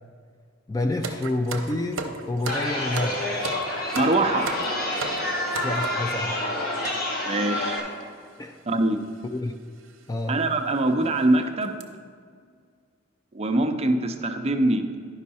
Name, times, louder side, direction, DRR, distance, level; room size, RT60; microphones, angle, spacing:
voice 1, 0.7-3.2 5.5-6.5 8.4-8.6 9.3-9.6 10.1-10.4, left 2 dB, 20° left, 6 dB, 0.3 m, -28 dB
sound 1, 1.0-6.1 6.8-7.0 7.7-7.8 8.0-8.2 9.2-9.4 9.8-9.9 10.5-10.6 11.0-11.2 11.6-11.8, right 4 dB, 70° right, 0.7 m, -35 dB
Chatter, 2.5-7.8, left 1 dB, 50° left, 1.6 m, -28 dB
voice 2, 3.9-4.5 7.2-7.8 8.7-9.0 10.3-11.8 13.3-14.9, right 2 dB, 30° right, 6 dB, 0.5 m, -23 dB
10.5 x 5.4 x 4.2 m, 2.1 s
head